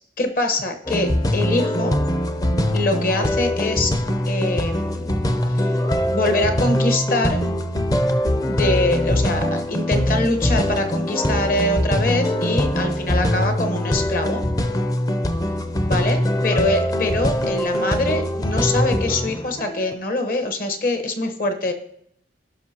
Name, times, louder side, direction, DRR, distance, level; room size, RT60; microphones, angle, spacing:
voice 1, 0.2-2.0 2.7-4.0 4.3-5.1 5.5-5.7 6.1-7.4 8.5-14.4 15.8-21.7, left 2 dB, 50° left, 6 dB, 1.1 m, -24 dB
sound 1, 0.9-19.9, left 1 dB, 20° left, 0.5 m, -22 dB
16.5 x 5.9 x 2.9 m, 0.70 s
head